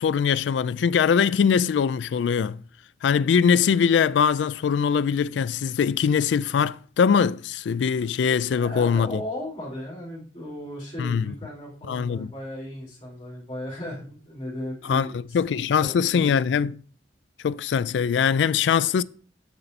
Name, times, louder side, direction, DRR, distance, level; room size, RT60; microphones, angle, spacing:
voice 1, 0.0-2.6 3.0-9.2 11.0-11.3 11.9-12.3 14.9-16.7 17.4-19.0, left 7 dB, 80° left, 0.3 m, -22 dB
voice 2, 8.6-15.4 15.8-16.3, left 1 dB, 30° left, 4.5 m, -36 dB
7.0 x 6.5 x 4.1 m
head